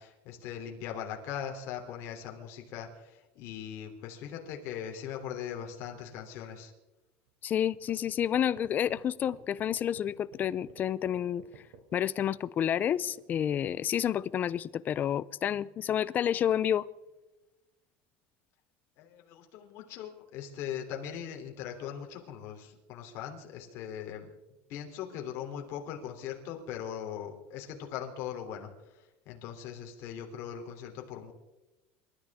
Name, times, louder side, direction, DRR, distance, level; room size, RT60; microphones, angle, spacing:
voice 1, 0.0-6.7 19.0-24.3 24.7-29.0 29.2-31.3, left 9 dB, 55° left, 2 dB, 3.2 m, -40 dB
sound 1, 7.3-7.4 7.7-12.4, right 7 dB, 75° right, 3.2 m, -52 dB
voice 2, 7.4-11.4 11.9-16.9, left 10 dB, 30° left, 19 dB, 0.5 m, -29 dB
28.5 x 13.5 x 3.6 m, 1.0 s
cardioid pair, 145°, 6 cm